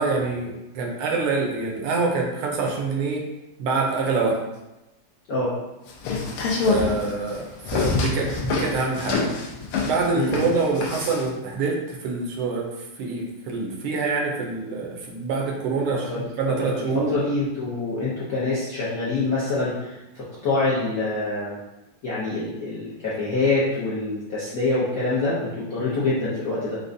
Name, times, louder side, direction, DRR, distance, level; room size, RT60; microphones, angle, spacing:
voice 1, 0.0-3.3 3.6-4.4 6.6-9.3 9.8-12.7 13.0-17.2, right 4 dB, 80° right, 0 dB, 1.6 m, -26 dB
sound 1, 5.9-11.3, left 4 dB, 80° left, 1.4 m, -26 dB
voice 2, 10.1-10.4 15.9-21.6 22.0-26.8, left 3 dB, 65° left, -9 dB, 0.9 m, -26 dB
5.0 x 2.2 x 2.6 m, 0.97 s
omnidirectional pair, 2.4 m